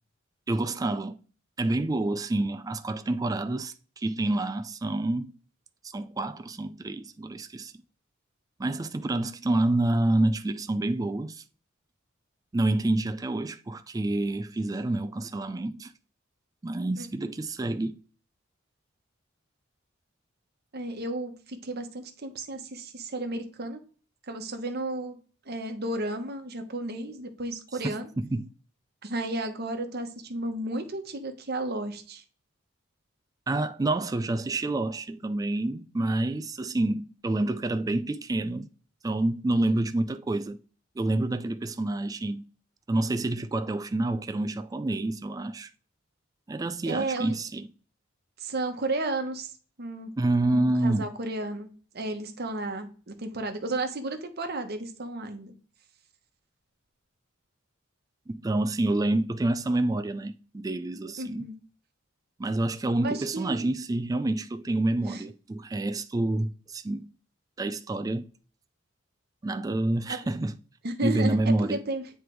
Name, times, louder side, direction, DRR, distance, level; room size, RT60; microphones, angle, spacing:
voice 1, 0.5-1.2 1.6-5.3 5.9-7.7 8.6-11.4 12.5-15.9 16.6-18.0 28.2-28.5 33.5-38.7 39.0-40.6 41.0-42.5 42.9-45.7 46.5-47.7 50.2-51.1 58.3-61.5 62.4-67.1 67.6-68.3 69.4-70.5 71.0-71.8, right 2 dB, 20° right, 0.3 m, -28 dB
voice 2, 20.7-23.8 24.3-25.2 25.5-28.1 29.0-32.2 46.8-47.4 48.4-49.5 49.8-50.1 50.4-55.5 61.2-61.6 63.0-63.7 65.0-65.2 70.1-70.2 70.8-71.4 71.7-72.0, right 2 dB, 50° right, 1.0 m, -33 dB
7.8 x 3.3 x 4.5 m
head